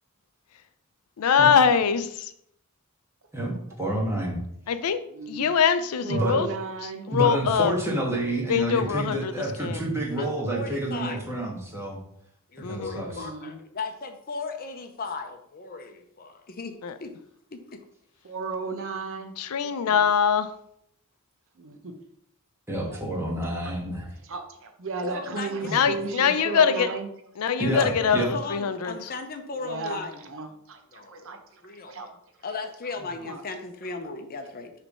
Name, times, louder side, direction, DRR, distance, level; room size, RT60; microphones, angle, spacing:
voice 1, 1.2-2.3 4.7-5.0 5.3-6.5 7.1-7.7 8.5-9.3 9.6-9.8 12.6-13.0 16.8-16.9 19.4-20.5 25.7-26.9 27.4-29.1, left 7 dB, 80° left, 11 dB, 0.5 m, -23 dB
voice 2, 3.8-4.4 6.1-6.4 7.1-12.0 12.6-13.2 22.7-24.1 25.6-25.9 27.6-28.4, right 1 dB, 10° right, -2 dB, 1.4 m, -29 dB
voice 3, 5.1-5.5 6.0-7.1 13.0-13.5 18.2-19.3 19.6-20.1 21.6-22.0 22.8-23.0 23.6-23.7 24.3-27.1 29.6-32.1 33.2-33.4, right 4 dB, 60° right, 6 dB, 0.8 m, -35 dB
voice 4, 10.2-11.2 12.5-16.7 17.0-17.1 17.5-17.8 25.0-26.5 27.7-30.2 30.9-32.1 32.4-34.7, left 3 dB, 40° left, 6 dB, 0.6 m, -37 dB
6.0 x 3.3 x 5.3 m, 0.73 s
head